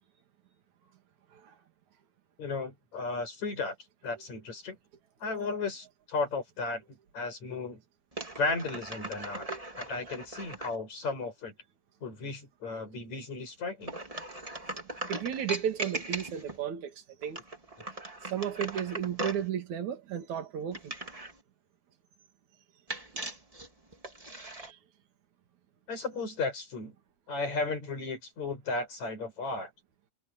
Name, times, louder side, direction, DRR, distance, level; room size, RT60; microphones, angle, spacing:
voice 1, 2.4-3.7 4.0-4.8 5.2-6.8 7.1-7.8 8.4-9.5 9.8-11.5 12.0-13.9 25.9-26.9 27.3-29.7, left 3 dB, 50° left, 8.3 m, -34 dB
sound 1, 8.1-10.8 13.8-16.6 17.2-19.5 20.7-21.4 22.9-24.7, right 1 dB, 10° right, 1.9 m, -39 dB
voice 2, 15.1-16.9 17.2-17.4 18.3-20.9 24.6-24.8, right 9 dB, 55° right, 3.8 m, -33 dB
omnidirectional pair, 4.1 m